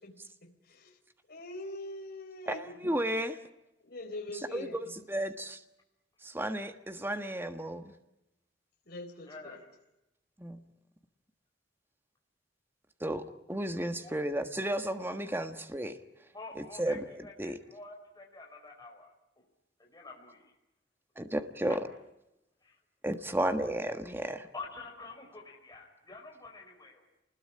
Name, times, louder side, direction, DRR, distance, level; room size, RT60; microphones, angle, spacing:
voice 1, 0.0-1.0 1.3-3.0 3.8-4.9 8.9-9.6, left 1 dB, 55° left, 2 dB, 3.9 m, -43 dB
voice 2, 2.5-3.4 4.5-5.6 6.2-7.9 10.4-10.6 13.0-16.0 16.8-17.6 21.2-21.8 23.0-24.5, right 1 dB, 10° right, 8 dB, 1.4 m, -33 dB
voice 3, 9.2-9.6 14.0-14.1 15.4-15.5 16.3-19.5 19.8-20.5 22.6-22.8 24.5-27.0, left 3 dB, 20° left, 0 dB, 4.9 m, -48 dB
29.0 x 20.5 x 10.0 m, 0.93 s
head